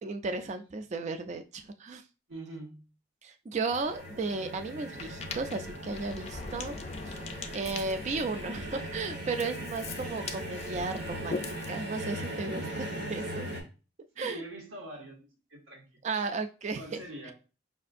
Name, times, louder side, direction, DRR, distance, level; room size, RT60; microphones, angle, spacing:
voice 1, 0.0-2.0 3.2-6.8 7.1-11.4 11.7-13.5 14.2-14.4 16.0-16.8, right 3 dB, 35° right, 8 dB, 0.3 m, -34 dB
voice 2, 2.3-2.8 14.1-15.2 15.5-16.3 16.8-17.3, right 1 dB, 90° right, -1 dB, 1.1 m, -44 dB
sound 1, 3.7-13.6, equal, 60° right, 1.2 m, -39 dB
Ocean, 5.0-11.7, left 4 dB, 35° left, 0.4 m, -41 dB
5.2 x 2.4 x 2.5 m, 0.33 s
head